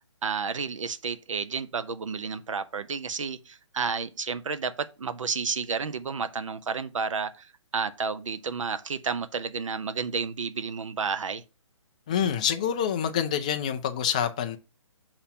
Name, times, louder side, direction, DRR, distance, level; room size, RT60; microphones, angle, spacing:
voice 1, 0.2-11.4, right 5 dB, 80° right, 0.8 m, -31 dB
voice 2, 12.1-14.6, left 8 dB, 15° left, 0.3 m, -27 dB
6.9 x 2.9 x 5.6 m
hypercardioid pair, 165°, 16 cm